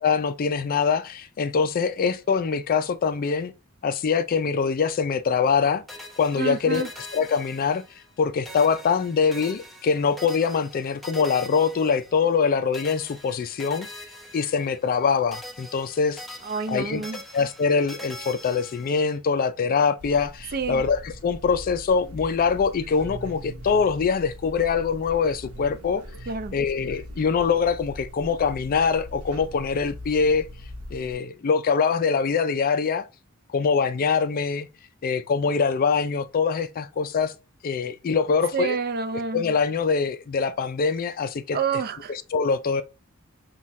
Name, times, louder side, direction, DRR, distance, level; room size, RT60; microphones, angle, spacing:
voice 1, 0.0-3.5 3.8-5.8 6.2-6.9 7.1-7.8 8.2-13.9 14.3-16.4 16.7-17.0 17.3-26.0 26.5-30.5 30.9-33.1 33.5-34.7 35.0-37.3 37.6-38.8 39.3-41.6 42.1-42.8, left 5 dB, 40° left, 0.3 m, -23 dB
sound 1, 5.9-8.2 8.4-12.4 12.7-15.0 15.3-19.2, left 1 dB, ahead, 0.9 m, -43 dB
voice 2, 6.4-6.9 16.4-17.2 20.5-20.8 26.3-26.6 38.5-39.4 41.5-42.1, right 5 dB, 45° right, 0.5 m, -28 dB
sound 2, 20.0-31.1, equal, 80° right, 0.9 m, -41 dB
5.6 x 2.3 x 3.1 m
head